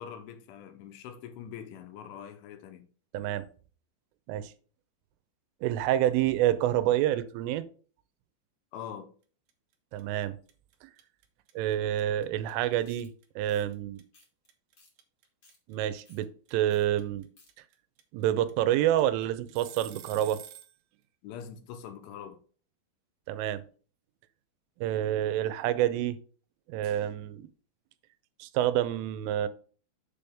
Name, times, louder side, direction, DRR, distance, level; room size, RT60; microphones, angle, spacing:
voice 1, 0.0-2.9 8.7-9.1 21.2-22.4, left 8 dB, 85° left, 3.4 m, -43 dB
voice 2, 3.1-3.5 4.3-4.5 5.6-7.7 9.9-10.4 10.8-10.9 11.6-14.0 15.7-17.3 18.1-20.4 23.3-23.6 24.8-26.2 26.7-27.5 28.4-29.5, right 12 dB, 90° right, 3.2 m, -28 dB
sound 1, 9.5-9.7 10.0-20.8, right 10 dB, 70° right, 2.4 m, -49 dB
sound 2, 12.8-13.1 13.5-13.7 14.1-14.5 14.8-14.9 15.2-15.6 16.0-16.2 16.7-16.8 17.1-17.5, left 3 dB, 30° left, 2.1 m, -60 dB
7.5 x 7.0 x 3.5 m
omnidirectional pair, 5.6 m